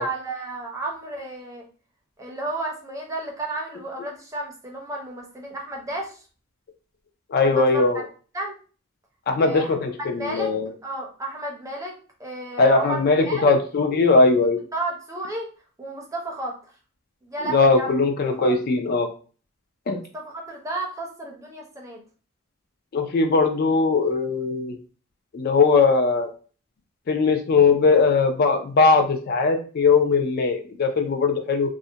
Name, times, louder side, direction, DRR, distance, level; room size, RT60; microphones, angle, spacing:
voice 1, 0.0-1.6 2.2-6.2 7.4-7.8 8.3-8.6 9.4-9.7 10.1-10.5 10.8-13.5 14.7-15.5 15.8-16.6 17.2-18.0 18.3-18.6 19.9-22.0, right 2 dB, 15° right, 0 dB, 0.5 m, -32 dB
voice 2, 7.3-8.0 9.3-10.7 12.6-14.6 17.4-19.1 19.9-20.0 22.9-24.8 25.3-26.3 27.1-31.7, left 4 dB, 45° left, 5 dB, 0.3 m, -20 dB
2.4 x 2.1 x 2.7 m, 0.38 s
head